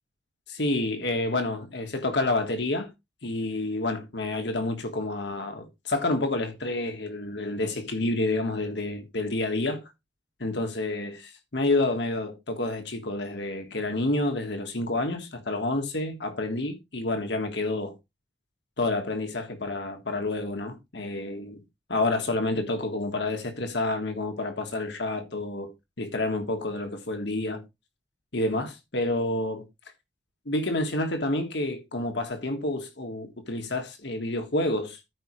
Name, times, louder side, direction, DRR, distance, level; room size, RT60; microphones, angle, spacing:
voice 1, 0.5-2.9 3.2-9.8 10.4-18.0 18.8-21.6 21.9-27.6 28.3-29.7 30.4-35.0, left 2 dB, 65° left, 1.5 m, -29 dB
14.0 x 4.9 x 3.1 m
head